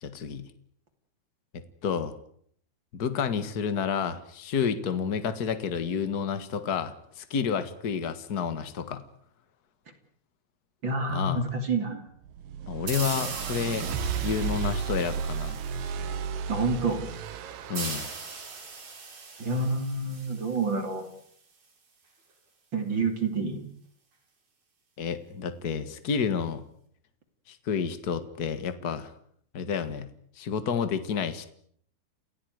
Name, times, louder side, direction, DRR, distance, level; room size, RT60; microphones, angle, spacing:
voice 1, 0.0-0.5 1.8-2.1 2.9-9.0 11.1-11.4 12.7-13.9 14.2-15.6 17.7-18.1 25.0-26.6 27.5-29.1 29.5-30.1 30.3-31.4, left 6 dB, 55° left, 11 dB, 1.0 m, -30 dB
voice 2, 10.8-12.0 16.5-17.0 19.4-21.1 22.7-23.6, right 3 dB, 30° right, 5 dB, 3.4 m, -28 dB
sound 1, 12.3-18.4, right 6 dB, 80° right, 3.7 m, -33 dB
sound 2, 12.9-16.3 17.7-21.2, right 4 dB, 65° right, 7.9 m, -40 dB
29.5 x 17.0 x 9.5 m, 0.65 s
omnidirectional pair, 4.6 m